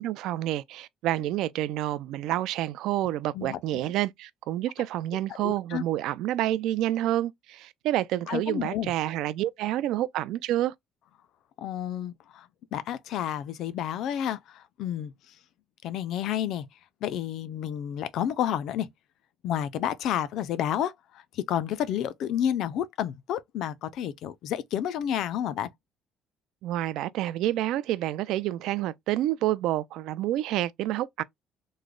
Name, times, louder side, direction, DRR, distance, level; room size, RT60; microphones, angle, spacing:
voice 1, 0.0-10.7 26.6-31.2, right 14 dB, 70° right, 0.3 m, -28 dB
voice 2, 3.3-3.8 5.4-5.8 8.3-8.9 11.6-15.1 15.8-16.7 17.0-18.9 19.4-25.7, left 10 dB, 60° left, 0.3 m, -30 dB
3.2 x 2.1 x 3.6 m
cardioid pair, 165°, 0 cm